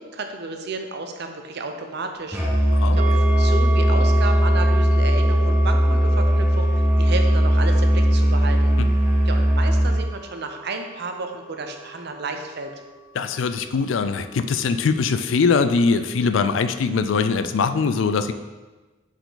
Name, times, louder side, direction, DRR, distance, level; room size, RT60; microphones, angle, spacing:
voice 1, 0.0-8.7 9.2-12.7, right 3 dB, 55° right, 5 dB, 0.7 m, -32 dB
Musical instrument, 2.3-10.1, equal, 10° right, 0.9 m, -18 dB
sound 1, 2.9-14.6 15.0-15.1, right 4 dB, 35° right, 1.2 m, -35 dB
voice 2, 13.1-18.3, left 5 dB, 70° left, 10 dB, 0.4 m, -22 dB
6.8 x 4.5 x 3.9 m, 1.2 s
head